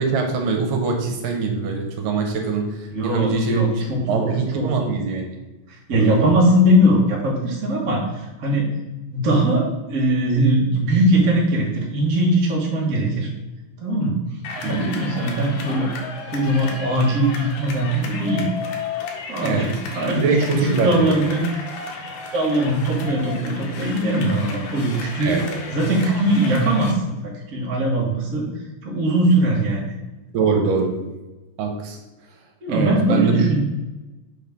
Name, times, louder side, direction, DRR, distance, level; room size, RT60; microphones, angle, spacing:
voice 1, 0.0-3.7 4.1-5.3 6.0-6.3 14.6-14.8 19.4-19.7 20.1-21.1 25.2-25.6 30.3-31.0 31.6-32.0 32.7-33.4, right 4 dB, 75° right, 3 dB, 2.4 m, -23 dB
voice 2, 2.9-4.9 5.7-8.7 9.1-13.3 13.8-14.2 14.6-15.9 16.3-18.5 19.3-20.2 20.5-21.4 21.8-21.9 22.3-25.4 25.7-27.1 27.5-28.5 28.8-29.8 32.6-33.6, right 1 dB, 55° right, -3 dB, 0.9 m, -20 dB
sound 1, 14.4-26.9, left 5 dB, 85° left, 2.8 m, -34 dB
5.9 x 5.4 x 3.5 m, 1.1 s
omnidirectional pair, 4.1 m